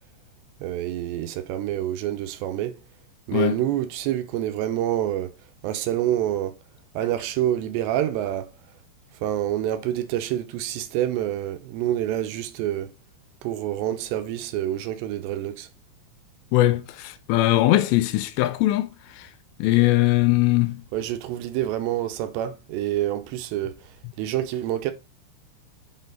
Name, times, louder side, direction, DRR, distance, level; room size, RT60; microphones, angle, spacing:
voice 1, 0.6-2.8 3.3-5.3 5.6-6.6 7.0-8.5 9.2-12.9 13.4-15.7 20.9-23.8 24.2-24.9, right 12 dB, 80° right, 2.9 m, -27 dB
voice 2, 16.5-18.9 19.2-19.3 19.6-20.8, left 16 dB, 80° left, 2.7 m, -20 dB
8.1 x 4.4 x 3.9 m
omnidirectional pair, 5.2 m